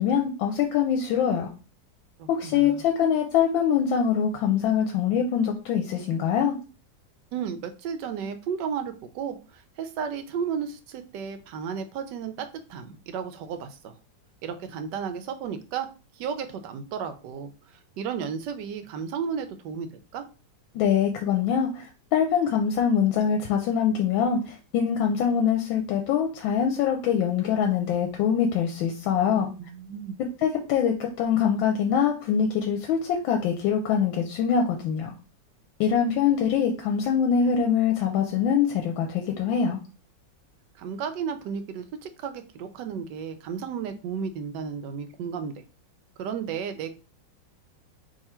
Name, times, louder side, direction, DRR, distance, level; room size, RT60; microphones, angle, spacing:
voice 1, 0.0-1.5 2.3-6.6 20.7-29.5 30.4-35.1 35.8-39.8, left 7 dB, 85° left, 3 dB, 1.4 m, -24 dB
voice 2, 2.2-2.8 7.3-13.9 14.4-15.9 16.1-19.9 20.1-20.2 29.2-30.2 40.8-45.5 46.2-46.9, right 7 dB, 75° right, 9 dB, 1.2 m, -33 dB
3.7 x 2.9 x 4.3 m, 0.34 s
omnidirectional pair, 2.1 m